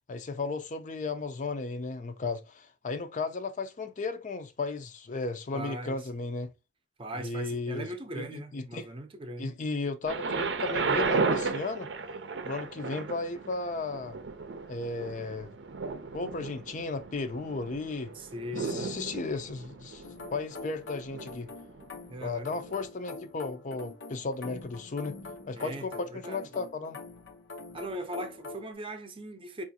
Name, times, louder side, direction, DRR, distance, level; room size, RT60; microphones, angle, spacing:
voice 1, 0.1-6.5 7.2-7.9 8.2-8.9 9.4-11.9 12.5-14.2 14.7-15.5 16.1-18.1 18.5-20.0 20.3-21.5 22.2-25.2 25.5-27.0, left 3 dB, 45° left, 0.5 m, -35 dB
voice 2, 5.5-6.0 7.0-9.5 18.1-18.9 22.1-22.5 25.5-26.5 27.7-29.6, right 1 dB, 30° right, 0.6 m, -39 dB
Thunder, 10.1-21.9 22.7-22.8, right 4 dB, 80° right, 0.5 m, -34 dB
sound 1, 20.0-28.7, left 3 dB, 90° left, 0.8 m, -44 dB
4.7 x 2.5 x 2.7 m
head